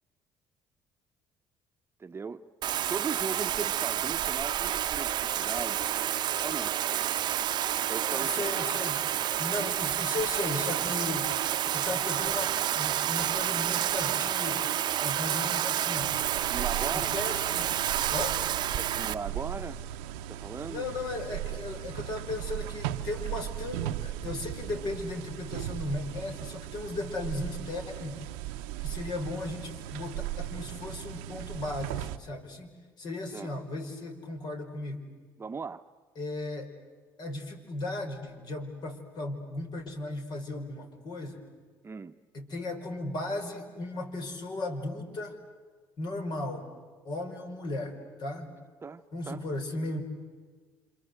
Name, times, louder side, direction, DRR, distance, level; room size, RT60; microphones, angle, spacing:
voice 1, 2.0-2.4 2.7-5.8 6.4-6.8 7.9-8.5 16.5-17.2 18.8-19.8 20.3-20.9 33.3-33.5 35.4-35.8 41.8-42.1 48.8-49.4, right 5 dB, 30° right, 9 dB, 1.0 m, -38 dB
Bathtub (filling or washing), 2.6-19.1, right 11 dB, 60° right, 0.8 m, -29 dB
voice 2, 8.1-9.0 9.4-11.3 11.7-14.7 15.0-16.2 16.9-17.7 18.1-18.5 20.7-28.3 28.8-32.7 33.0-35.1 36.2-36.7 37.2-41.4 42.3-45.4 46.0-46.7 47.0-48.5 49.1-50.0, left 2 dB, 55° left, 5 dB, 5.0 m, -36 dB
sound 1, 16.0-32.2, right 12 dB, 85° right, 0.8 m, -38 dB
28.0 x 26.5 x 8.1 m, 1.5 s
supercardioid pair, 70°, 9 cm